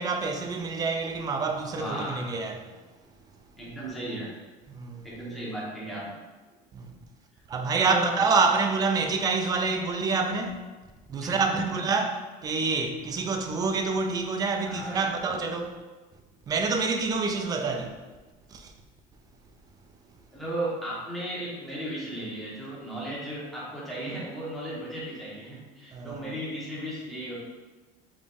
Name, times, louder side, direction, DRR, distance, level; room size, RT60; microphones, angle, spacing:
voice 1, 0.0-2.7 4.7-5.1 6.7-6.9 7.5-10.6 11.1-12.1 12.4-15.7 16.5-17.9 18.5-18.7 25.9-26.4, right 4 dB, 20° right, 0.3 m, -27 dB
voice 2, 1.7-2.3 3.6-4.4 5.0-6.2 7.7-8.2 11.2-11.8 12.5-12.6 14.6-15.1 20.3-27.4, right 1 dB, ahead, 1.2 m, -35 dB
5.0 x 3.4 x 2.5 m
cardioid pair, 150°, 17 cm